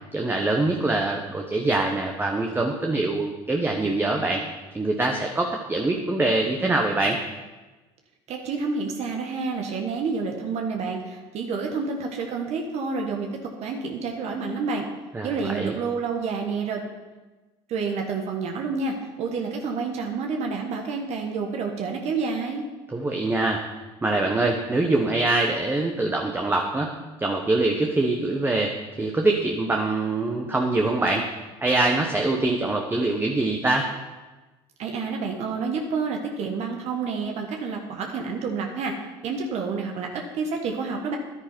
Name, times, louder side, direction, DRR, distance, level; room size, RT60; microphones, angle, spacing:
voice 1, 0.1-4.4 4.7-7.2 15.1-15.7 22.9-23.6 24.0-26.9 27.2-28.7 29.0-31.3 31.6-33.9, right 2 dB, 15° right, 1 dB, 1.1 m, -24 dB
voice 2, 8.3-13.3 13.6-14.8 15.2-16.8 17.7-22.6 34.8-38.9 39.2-41.2, right 4 dB, 60° right, 2 dB, 1.4 m, -29 dB
10.5 x 9.8 x 4.5 m, 1.2 s
supercardioid pair, 85°, 13 cm